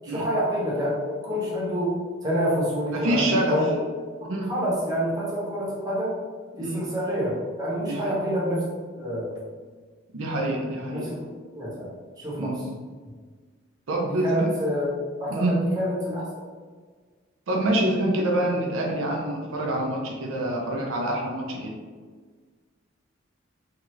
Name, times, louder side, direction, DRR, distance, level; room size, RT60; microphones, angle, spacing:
voice 1, 0.0-3.8 4.2-6.2 6.6-8.6 9.0-9.4 10.9-11.3 11.5-12.6 14.0-14.9 15.2-16.2, equal, 20° right, -7 dB, 0.8 m, -27 dB
voice 2, 2.9-3.6 4.2-4.5 6.6-6.8 7.8-8.2 10.1-11.1 12.4-12.6 13.9-14.5 15.3-15.6 17.5-21.7, right 1 dB, 85° right, 0 dB, 0.5 m, -26 dB
2.8 x 2.4 x 3.1 m, 1.5 s
head